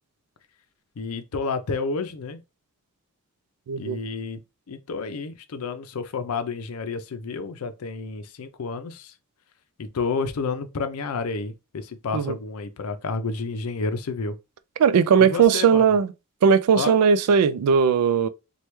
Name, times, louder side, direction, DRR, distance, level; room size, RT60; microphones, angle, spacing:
voice 1, 1.0-2.4 3.8-4.4 4.7-9.1 9.8-14.4 15.2-16.0 16.7-17.0, left 4 dB, 75° left, 0.5 m, -30 dB
voice 2, 3.7-4.0 12.1-12.3 14.8-16.1 16.4-18.3, right 6 dB, 90° right, 0.3 m, -18 dB
3.2 x 2.2 x 3.0 m
head